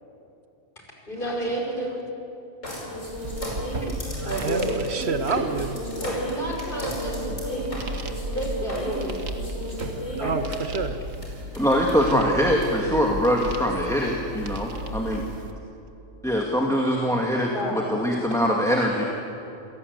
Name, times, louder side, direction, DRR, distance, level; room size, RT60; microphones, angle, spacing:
voice 1, 1.1-2.0 4.2-4.8 6.0-7.8 8.3-9.2 10.2-10.4 17.5-17.9, right 1 dB, 40° left, -1 dB, 5.3 m, -30 dB
sound 1, 2.6-10.6 11.2-11.3 11.5-11.9 12.6-12.7, equal, 80° left, 6.0 m, -34 dB
sound 2, 3.1-15.5, right 1 dB, 85° right, 1.9 m, -35 dB
voice 2, 4.1-5.8 9.9-10.4 10.7-11.0, right 5 dB, 55° right, 10 dB, 1.2 m, -28 dB
voice 3, 11.6-15.2 16.2-19.0, equal, ahead, -1 dB, 2.0 m, -23 dB
28.0 x 17.5 x 8.2 m, 2.8 s
omnidirectional pair, 1.3 m